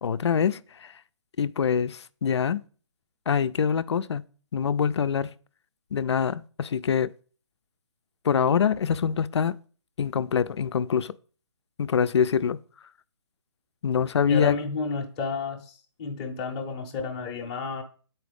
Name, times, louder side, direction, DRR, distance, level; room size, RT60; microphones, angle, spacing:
voice 1, 0.0-0.9 1.4-2.6 3.3-4.2 4.5-5.3 5.9-7.1 8.2-9.6 10.0-11.1 11.8-12.6 13.8-14.6, left 7 dB, 65° left, 0.4 m, -24 dB
voice 2, 14.3-17.8, left 4 dB, 15° left, 0.7 m, -31 dB
7.0 x 4.5 x 5.1 m
hypercardioid pair, 170°, 15 cm